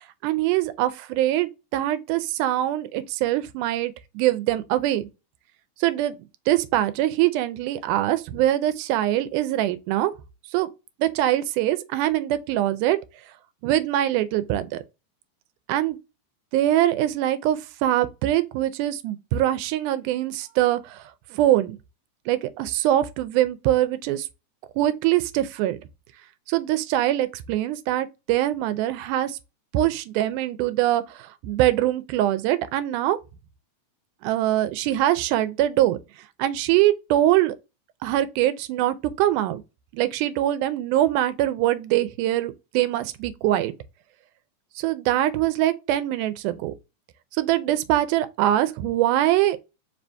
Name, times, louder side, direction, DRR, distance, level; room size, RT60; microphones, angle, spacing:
voice 1, 0.2-5.1 5.8-6.1 6.5-10.1 10.5-10.7 11.0-13.0 13.6-14.8 15.7-16.0 16.5-21.8 22.3-24.3 24.8-25.8 26.5-29.4 29.7-33.2 34.2-36.0 36.4-37.6 38.0-39.6 39.9-43.7 44.8-46.7 47.4-49.6, right 13 dB, 85° right, 2.0 m, -23 dB
4.8 x 2.6 x 3.3 m
omnidirectional pair, 3.6 m